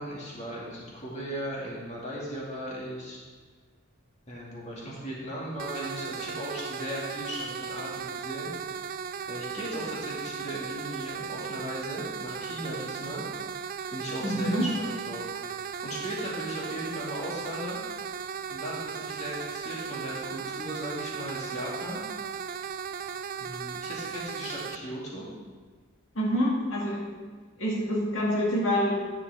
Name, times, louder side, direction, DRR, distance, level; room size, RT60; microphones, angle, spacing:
voice 1, 0.0-3.2 4.3-8.5 9.3-13.2 13.9-17.8 18.5-22.0 23.4-25.3, equal, 35° left, -5 dB, 2.2 m, -37 dB
sound 1, 5.6-24.8, right 7 dB, 45° right, 0.4 m, -36 dB
voice 2, 14.2-14.7 26.1-27.3 27.6-28.9, equal, 70° left, -5 dB, 2.1 m, -27 dB
10.5 x 8.6 x 3.5 m, 1.4 s
head